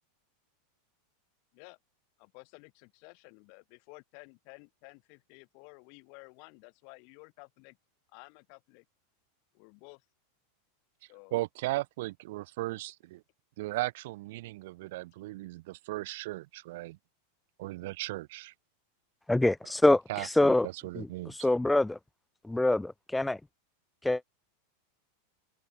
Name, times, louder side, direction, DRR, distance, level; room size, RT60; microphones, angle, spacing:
voice 1, 2.2-7.8 8.1-8.9 9.5-10.0 11.1-11.4, left 39 dB, 45° left, 6.6 m, -53 dB
voice 2, 11.0-13.2 13.6-17.0 17.6-18.5 20.1-21.4, right 18 dB, 60° right, 6.0 m, -37 dB
voice 3, 19.3-20.7 21.0-22.0 22.4-23.4 24.0-24.2, left 2 dB, 5° left, 0.6 m, -25 dB
supercardioid pair, 155°, 0 cm